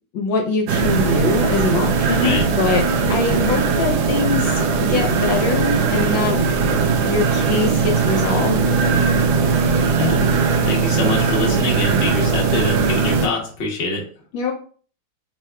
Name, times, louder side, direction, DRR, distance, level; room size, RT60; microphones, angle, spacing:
voice 1, 0.1-2.8 3.1-6.4 7.0-8.6 14.3-14.5, left 4 dB, 70° left, 2 dB, 1.4 m, -23 dB
sound 1, 0.7-13.3, right 5 dB, 80° right, 0.9 m, -19 dB
voice 2, 2.1-2.5 10.0-10.2 10.6-14.0, left 3 dB, 45° left, -2 dB, 0.8 m, -24 dB
4.6 x 3.4 x 2.2 m, 0.43 s
omnidirectional pair, 2.3 m